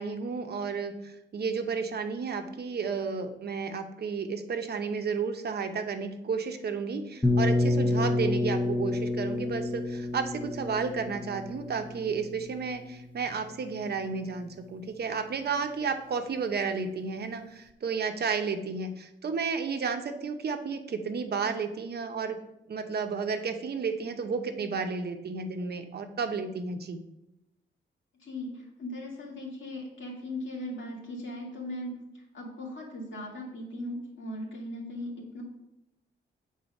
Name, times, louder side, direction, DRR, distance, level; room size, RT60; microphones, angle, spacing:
voice 1, 0.0-22.4 22.7-27.0, right 5 dB, 55° right, 6 dB, 0.7 m, -32 dB
sound 1, 7.2-13.0, left 2 dB, 10° left, 0.8 m, -29 dB
voice 2, 28.2-35.4, left 1 dB, 75° left, -2 dB, 2.2 m, -38 dB
7.9 x 4.0 x 5.2 m, 0.86 s
wide cardioid pair, 130°, 20 cm